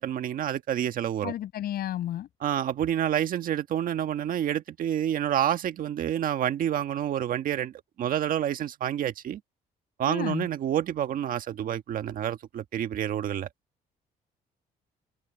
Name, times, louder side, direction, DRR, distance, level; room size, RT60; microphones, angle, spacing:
voice 1, 0.0-1.3 2.4-7.7 8.0-9.4 10.0-13.5, right 10 dB, 55° right, 1.6 m, -28 dB
voice 2, 1.2-2.3 10.1-10.5, left 12 dB, 65° left, 6.6 m, -32 dB
cardioid pair, 140°, 17 cm